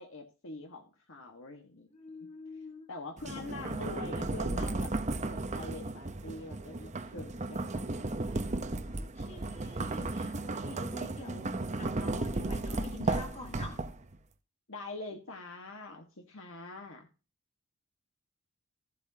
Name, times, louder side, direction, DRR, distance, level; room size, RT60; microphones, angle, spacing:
voice 1, 0.0-1.9 2.9-4.9 5.3-8.2 8.6-8.7 14.7-17.1, left 2 dB, 65° left, 4 dB, 1.5 m, -44 dB
voice 2, 1.9-2.9 8.9-13.8, left 2 dB, 30° left, 3 dB, 3.2 m, -46 dB
sound 1, 3.2-14.2, right 2 dB, 35° right, 0.8 m, -35 dB
15.0 x 8.2 x 2.8 m, 0.34 s
head